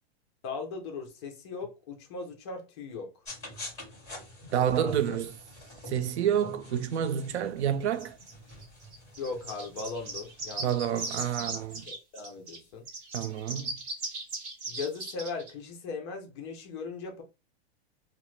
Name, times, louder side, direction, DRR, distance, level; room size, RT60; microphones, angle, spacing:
voice 1, 0.4-3.1 4.5-5.2 9.2-10.8 11.9-12.9 14.7-17.2, left 4 dB, 25° left, 0.5 m, -38 dB
sound 1, 3.2-11.8, left 1 dB, 10° left, 1.7 m, -47 dB
voice 2, 4.5-5.3 5.9-8.2 10.6-11.8 13.1-13.8, right 9 dB, 85° right, 0.5 m, -29 dB
sound 2, 8.0-12.6 12.8-15.5, right 3 dB, 25° right, 0.7 m, -38 dB
2.9 x 2.1 x 3.1 m
supercardioid pair, 170°, 33 cm